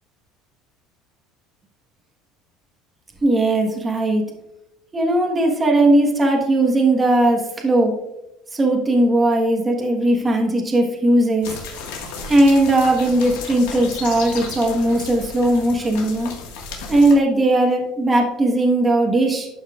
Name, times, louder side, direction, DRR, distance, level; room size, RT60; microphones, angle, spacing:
voice 1, 3.2-4.2 4.9-7.9 8.5-11.6 12.3-16.3 16.9-19.5, right 1 dB, 20° right, 0 dB, 1.3 m, -18 dB
sound 1, 11.4-17.1, left 4 dB, 85° left, 1.6 m, -34 dB
11.5 x 5.6 x 2.4 m, 0.91 s
cardioid pair, 130°, 0 cm